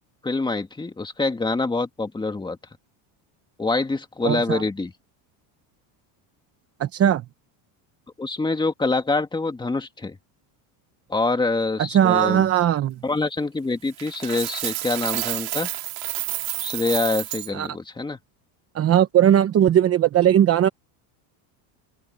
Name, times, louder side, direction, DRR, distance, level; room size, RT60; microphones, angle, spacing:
voice 1, 0.2-2.6 3.6-4.9 8.2-10.2 11.1-12.4 13.0-15.7 16.6-18.2, left 3 dB, 10° left, 2.1 m, -25 dB
voice 2, 4.2-4.6 6.8-7.2 11.8-13.0 17.5-17.7 18.7-20.7, right 10 dB, 30° right, 0.9 m, -18 dB
Coin (dropping), 14.0-17.5, right 26 dB, 85° right, 2.6 m, -30 dB
open air
cardioid pair, 155°, 50 cm